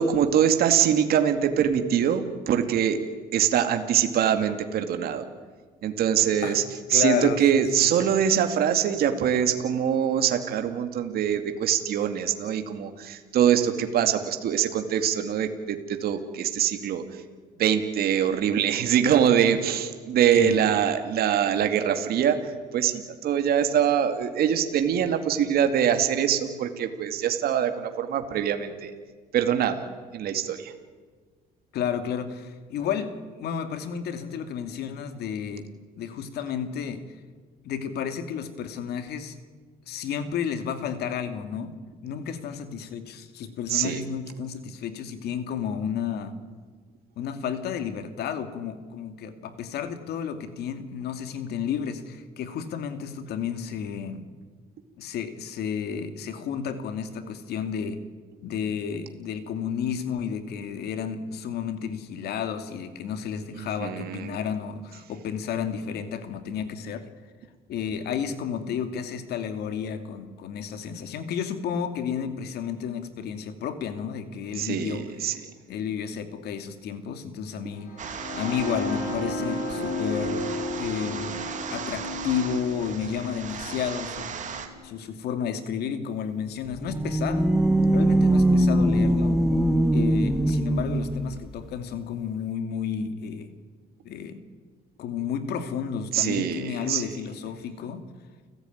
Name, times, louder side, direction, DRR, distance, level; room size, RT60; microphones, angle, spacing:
voice 1, 0.0-3.0 3.3-5.2 5.8-6.6 6.9-17.2 17.6-28.9 29.3-29.9 30.1-30.7 43.7-44.0 63.8-64.4 74.6-75.4 96.1-97.1, right 9 dB, 65° right, 7 dB, 2.3 m, -23 dB
voice 2, 6.9-7.9 20.3-20.6 31.7-33.1 33.4-35.7 36.0-37.0 37.6-39.4 39.9-41.7 42.0-46.4 47.2-54.2 55.0-58.0 58.4-67.1 67.7-75.3 75.7-77.9 78.4-80.5 80.8-81.3 81.7-84.4 84.8-87.5 87.9-89.4 89.9-93.5 94.0-94.4 95.0-98.0, left 7 dB, 75° left, 9 dB, 2.5 m, -32 dB
sound 1, 77.8-85.7, left 1 dB, 55° left, 6.2 m, -33 dB
sound 2, 78.0-84.7, right 7 dB, 45° right, 3.1 m, -37 dB
sound 3, 86.6-91.5, right 1 dB, ahead, 1.3 m, -22 dB
29.5 x 15.5 x 9.4 m, 1.5 s
cardioid pair, 110°, 17 cm